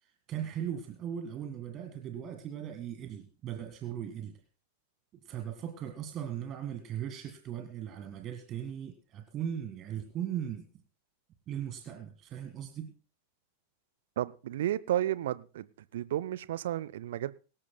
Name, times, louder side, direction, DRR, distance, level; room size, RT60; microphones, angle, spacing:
voice 1, 0.0-4.4 5.3-10.7 11.5-12.9, right 9 dB, 30° right, 1.8 m, -38 dB
voice 2, 14.2-15.7 15.9-17.3, right 12 dB, 60° right, 0.6 m, -32 dB
23.5 x 13.5 x 2.2 m
figure-of-eight pair, 90°, 0 cm